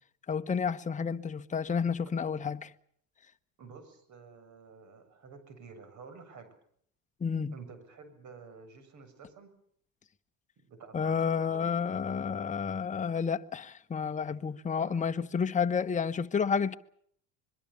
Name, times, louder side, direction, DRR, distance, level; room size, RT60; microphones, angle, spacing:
voice 1, 0.3-2.7 7.2-7.5 10.9-16.8, left 6 dB, 20° left, 1.1 m, -30 dB
voice 2, 3.6-6.5 7.5-9.5 10.7-11.6 14.8-14.9, right 5 dB, 50° right, 7.5 m, -50 dB
25.0 x 22.5 x 7.1 m
supercardioid pair, 85°, 37 cm